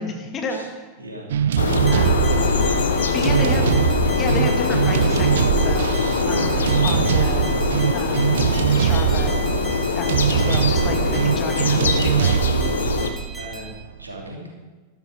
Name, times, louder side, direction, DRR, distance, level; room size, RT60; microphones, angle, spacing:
voice 1, 0.0-0.8 1.9-2.3 2.9-3.6 4.2-6.0 6.3-7.5 7.9-8.3 8.8-9.4 9.9-12.4, left 3 dB, 30° left, 3 dB, 2.3 m, -31 dB
voice 2, 1.0-1.3 2.2-2.6 3.1-3.7 13.3-13.7 14.0-14.5, right 1 dB, 80° right, -1 dB, 3.0 m, -36 dB
sound 1, 1.3-14.0, right 9 dB, 60° right, 0.5 m, -22 dB
sound 2, 1.6-13.1, left 4 dB, 70° left, 1.1 m, -23 dB
sound 3, 1.9-13.7, right 3 dB, 5° right, 2.5 m, -39 dB
13.0 x 12.5 x 5.1 m, 1.3 s
figure-of-eight pair, 90°, 0 cm